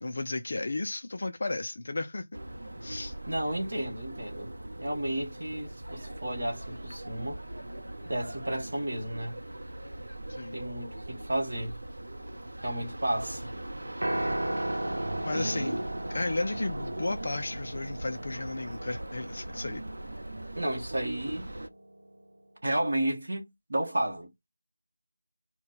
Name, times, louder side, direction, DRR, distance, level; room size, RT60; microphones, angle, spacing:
voice 1, 0.0-2.3 2.8-3.1 10.3-10.6 15.2-15.8 16.1-19.8, left 2 dB, 25° left, 0.3 m, -33 dB
sound 1, 2.3-21.7, right 1 dB, 55° right, 0.7 m, -40 dB
voice 2, 3.3-4.5 4.8-7.4 8.0-9.4 10.5-11.8 12.6-13.5 15.3-15.9 20.6-21.5 22.6-23.4 23.7-24.3, right 1 dB, 30° right, 1.1 m, -32 dB
Piano, 14.0-22.3, right 1 dB, 85° right, 0.8 m, -37 dB
5.8 x 2.1 x 3.8 m
figure-of-eight pair, 180°, 0 cm